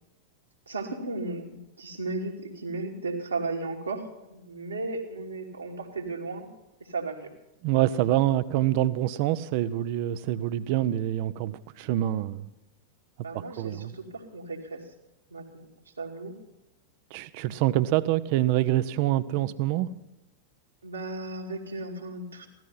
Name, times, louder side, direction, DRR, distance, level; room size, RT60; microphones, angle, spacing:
voice 1, 0.7-6.5 6.8-7.3 13.2-14.9 15.3-15.7 16.0-16.4 20.8-22.5, right 3 dB, 80° right, 0 dB, 2.6 m, -35 dB
voice 2, 7.6-12.4 13.6-13.9 17.1-19.9, right 14 dB, 45° right, 15 dB, 0.7 m, -26 dB
16.0 x 13.5 x 5.7 m, 0.94 s
figure-of-eight pair, 90°, 0 cm